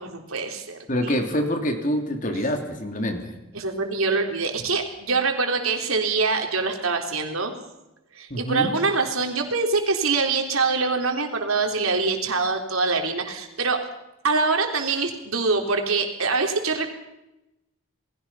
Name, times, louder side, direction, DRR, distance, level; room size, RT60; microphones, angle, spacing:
voice 1, 0.0-1.1 3.5-7.5 8.1-13.8 14.2-16.9, right 4 dB, 85° right, 3 dB, 3.8 m, -24 dB
voice 2, 0.9-3.4 8.3-8.7, equal, 40° left, 4 dB, 3.1 m, -26 dB
29.0 x 20.5 x 5.7 m, 0.92 s
head